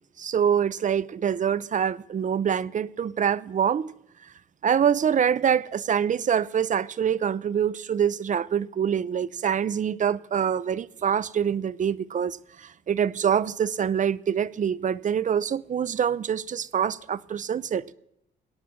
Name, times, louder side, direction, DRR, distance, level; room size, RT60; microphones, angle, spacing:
voice 1, 0.2-3.9 4.6-17.8, right 8 dB, 40° right, 0.6 m, -25 dB
22.0 x 8.8 x 5.9 m
cardioid pair, 90°, 20 cm